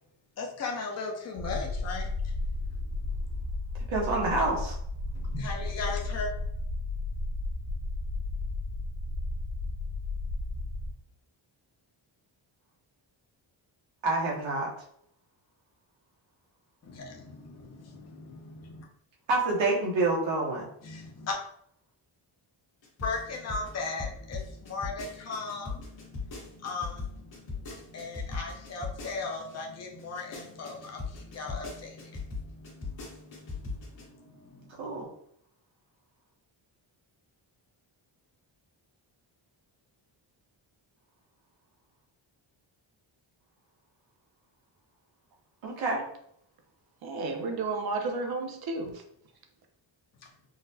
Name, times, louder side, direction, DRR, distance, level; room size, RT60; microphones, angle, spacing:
voice 1, 0.4-2.1 5.2-6.3 16.8-18.9 20.8-21.4 23.0-34.7, left 3 dB, 35° left, 1 dB, 0.5 m, -38 dB
sound 1, 1.4-10.9, left 2 dB, 90° left, 1.5 m, -33 dB
voice 2, 3.9-4.7 14.0-14.7 19.3-20.7 34.8-35.1 45.6-46.0, right 2 dB, 75° right, -3 dB, 0.9 m, -27 dB
sound 2, 22.8-29.5 30.0-34.0, left 4 dB, 70° left, 1.4 m, -38 dB
voice 3, 47.0-49.0, right 3 dB, 55° right, 4 dB, 0.6 m, -32 dB
3.8 x 2.1 x 2.7 m, 0.69 s
wide cardioid pair, 160°, 47 cm